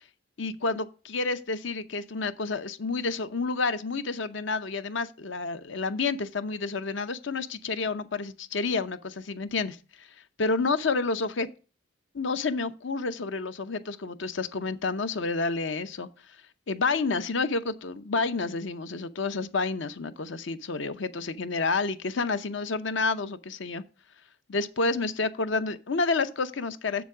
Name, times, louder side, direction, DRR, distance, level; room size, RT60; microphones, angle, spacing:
voice 1, 0.4-9.8 10.4-11.5 12.1-16.1 16.7-23.8 24.5-27.1, left 3 dB, 65° left, 0.7 m, -29 dB
7.2 x 7.1 x 4.8 m
head